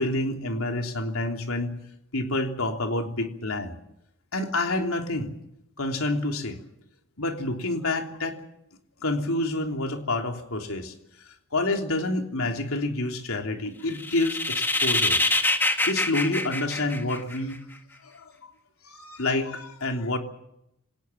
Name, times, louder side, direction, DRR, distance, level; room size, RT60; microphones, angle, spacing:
voice 1, 0.0-1.8 2.1-3.7 4.3-5.3 5.8-6.6 7.2-8.4 9.0-10.9 11.3-15.2 15.5-15.6 15.9-17.6 18.0-18.3 18.8-20.2, left 2 dB, 75° left, 4 dB, 3.3 m, -28 dB
sound 1, 13.9-17.5, left 2 dB, 10° left, 1.6 m, -25 dB
26.5 x 18.5 x 7.2 m, 0.80 s
head